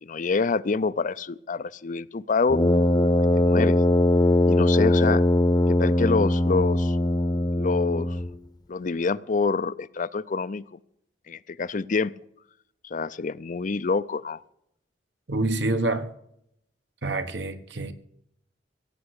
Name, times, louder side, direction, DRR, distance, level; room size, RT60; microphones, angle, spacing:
voice 1, 0.0-2.6 3.3-3.8 4.5-5.2 5.7-7.0 7.6-8.2 8.7-10.8 11.3-12.1 12.8-14.4, left 4 dB, 45° left, 0.5 m, -26 dB
Brass instrument, 2.5-8.4, left 1 dB, 25° left, 0.8 m, -21 dB
voice 2, 15.3-16.1 17.0-17.9, right 2 dB, 75° right, 1.5 m, -27 dB
17.0 x 7.9 x 8.1 m
head